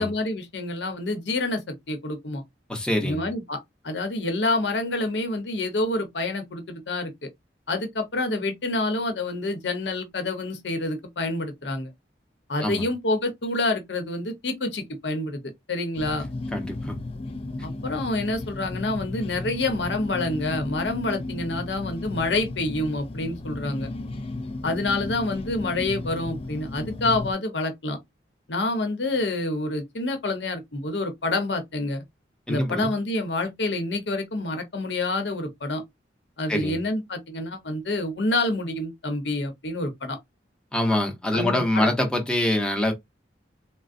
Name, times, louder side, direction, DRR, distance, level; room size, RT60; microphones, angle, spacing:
voice 1, 0.0-2.4 3.0-3.6 3.8-7.1 7.7-11.9 12.5-15.4 15.7-16.3 17.8-23.9 24.6-28.0 28.5-32.0 32.5-35.8 36.4-40.2 41.3-41.9, left 2 dB, 80° left, 0.9 m, -27 dB
voice 2, 2.7-3.2 12.6-12.8 16.5-17.0 32.5-32.9 36.5-36.8 40.7-42.9, left 1 dB, 5° left, 0.8 m, -25 dB
sound 1, 15.9-27.3, left 2 dB, 35° left, 0.4 m, -34 dB
3.7 x 2.0 x 2.5 m
head